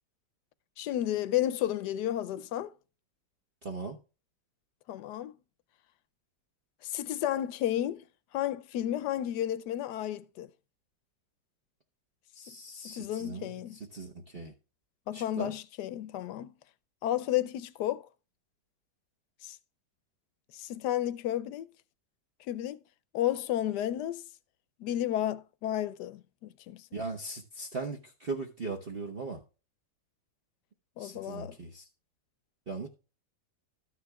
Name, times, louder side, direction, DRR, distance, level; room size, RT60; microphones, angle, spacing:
voice 1, 0.8-2.7 4.9-5.3 6.8-8.1 8.3-10.5 12.8-13.8 15.1-16.5 17.0-18.1 19.4-19.6 20.5-21.7 22.4-22.8 23.1-24.2 24.8-26.9 31.0-31.6, left 12 dB, 75° left, 1.2 m, -32 dB
voice 2, 3.6-4.0 12.3-13.5 13.9-14.5 15.1-15.5 26.9-29.4 31.0-31.8 32.7-32.9, right 3 dB, 35° right, 1.2 m, -39 dB
13.5 x 9.7 x 2.3 m
omnidirectional pair, 1.9 m